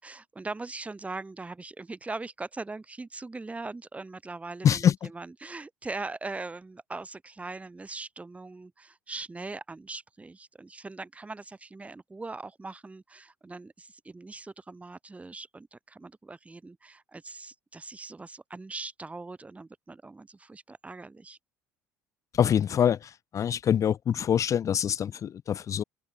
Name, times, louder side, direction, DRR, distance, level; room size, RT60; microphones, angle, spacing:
voice 1, 0.0-21.4, right 3 dB, 15° right, 1.7 m, -41 dB
voice 2, 4.6-5.1 22.3-25.8, left 9 dB, 45° left, 0.7 m, -25 dB
open air
hypercardioid pair, 65°, 8 cm